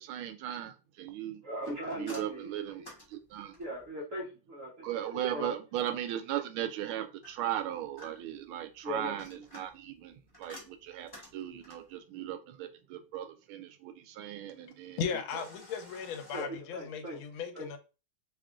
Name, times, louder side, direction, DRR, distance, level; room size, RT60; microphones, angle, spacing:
voice 1, 0.0-1.4 1.9-3.5 4.8-15.0 15.3-15.5, right 11 dB, 80° right, 1.4 m, -37 dB
voice 2, 1.4-2.5 2.8-2.9 3.6-5.5 8.8-9.4 16.3-17.2 17.5-17.8, equal, 50° right, 1.1 m, -39 dB
sound 1, 1.6-3.9 7.2-8.5 9.0-12.0 15.3-16.4, left 1 dB, 15° left, 0.9 m, -52 dB
voice 3, 15.0-17.8, left 6 dB, 80° left, 1.4 m, -37 dB
3.5 x 2.4 x 3.6 m
omnidirectional pair, 2.3 m